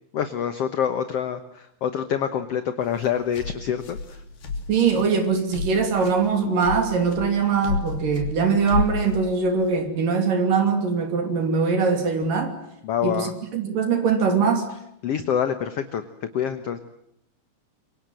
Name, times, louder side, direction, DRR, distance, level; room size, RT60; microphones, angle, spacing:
voice 1, 0.1-4.2 12.8-13.3 15.0-16.0 16.3-16.8, left 8 dB, 60° left, 9 dB, 1.7 m, -26 dB
sound 1, 2.8-9.8, left 3 dB, 85° left, 5.0 m, -32 dB
voice 2, 4.7-12.6 13.0-14.7, right 5 dB, 65° right, 6 dB, 4.4 m, -22 dB
27.0 x 24.5 x 7.7 m, 0.76 s
omnidirectional pair, 4.1 m